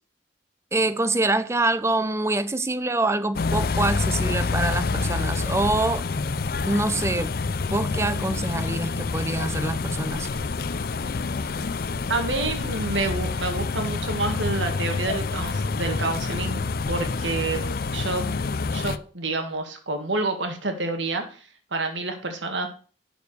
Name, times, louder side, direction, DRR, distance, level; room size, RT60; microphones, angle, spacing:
voice 1, 0.7-6.0 6.6-7.3 7.7-10.3, right 2 dB, 15° right, 0.6 m, -25 dB
sound 1, 3.3-19.0, left 4 dB, 55° left, 0.5 m, -27 dB
voice 2, 12.1-16.6 16.9-18.3 18.7-22.7, right 3 dB, 80° right, 1.9 m, -28 dB
11.5 x 5.0 x 6.7 m
head